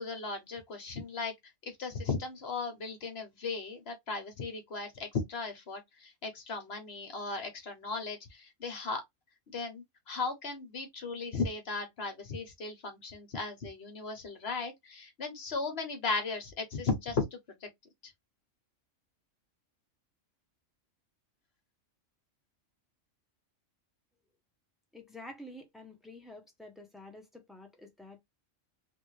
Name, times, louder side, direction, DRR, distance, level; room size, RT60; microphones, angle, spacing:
voice 1, 0.0-1.3 1.8-9.0 9.5-17.7, left 4 dB, 50° left, 1.2 m, -36 dB
voice 2, 24.9-28.2, left 1 dB, ahead, 0.7 m, -49 dB
3.4 x 2.5 x 3.2 m
omnidirectional pair, 1.4 m